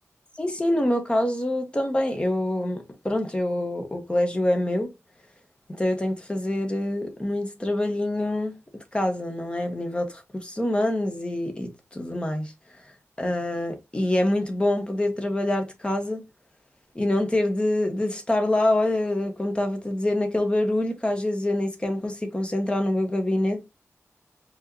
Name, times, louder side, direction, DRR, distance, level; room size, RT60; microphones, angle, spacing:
voice 1, 0.4-4.9 5.7-12.5 13.2-16.2 16.9-23.6, left 1 dB, 20° left, 1.2 m, -25 dB
4.7 x 3.0 x 2.8 m
wide cardioid pair, 110°, 5 cm